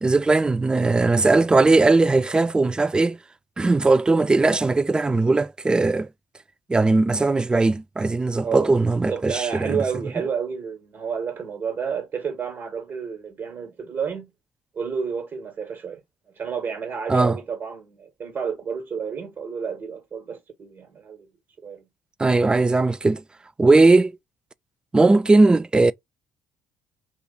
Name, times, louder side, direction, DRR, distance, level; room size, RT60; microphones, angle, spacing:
voice 1, 0.0-3.2 3.6-6.1 6.7-9.8 17.1-17.4 22.2-23.2 23.6-24.1 24.9-25.9, right 3 dB, 15° right, 0.3 m, -19 dB
voice 2, 9.1-14.3 14.7-16.0 16.4-21.3 21.6-21.8, right 6 dB, 45° right, 1.4 m, -30 dB
2.8 x 2.5 x 3.9 m
hypercardioid pair, 55°, 5 cm